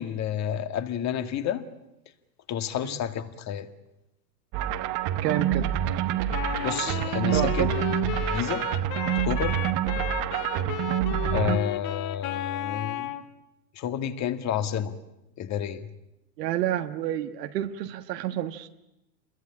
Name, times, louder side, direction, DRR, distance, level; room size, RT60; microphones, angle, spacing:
voice 1, 0.0-1.6 2.5-3.7 6.6-7.7 8.1-8.7 9.2-9.6 11.3-13.2 13.8-15.0 15.4-15.9, left 9 dB, 35° left, 9 dB, 2.0 m, -30 dB
sound 1, 4.5-11.6, right 11 dB, 40° right, 1.1 m, -27 dB
voice 2, 5.2-5.7 7.3-7.7 10.6-10.7 16.4-18.7, right 12 dB, 75° right, 6 dB, 1.6 m, -29 dB
Wind instrument woodwind instrument, 6.3-13.3, left 13 dB, 50° left, 2.0 m, -34 dB
27.0 x 21.5 x 8.8 m, 0.90 s
hypercardioid pair, 120°, 50 cm